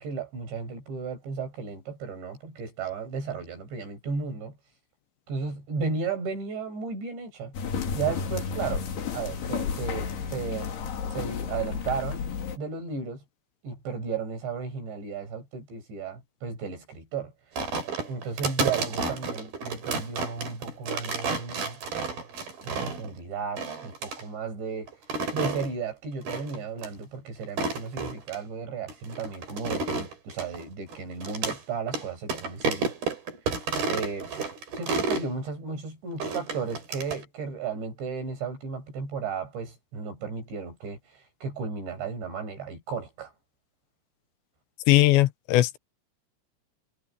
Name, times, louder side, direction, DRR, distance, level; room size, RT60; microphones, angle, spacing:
voice 1, 0.0-4.6 5.3-7.5 7.9-8.9 9.1-10.7 11.1-12.2 12.6-13.2 13.6-17.3 18.1-21.8 22.6-24.9 25.3-32.9 33.9-34.3 34.7-41.0 41.4-43.3, right 5 dB, 80° right, 9.9 m, -34 dB
sound 1, 7.5-12.6, left 6 dB, 65° left, 5.0 m, -32 dB
sound 2, 17.6-23.1 23.6-24.2 24.9-25.7 26.3-26.6 26.8-26.9 27.4-28.4 28.9-31.6 31.9-32.0 32.3-35.3 36.2-37.2, right 4 dB, 60° right, 6.6 m, -31 dB
voice 2, 44.9-45.8, left 16 dB, 85° left, 3.3 m, -19 dB
omnidirectional pair, 5.1 m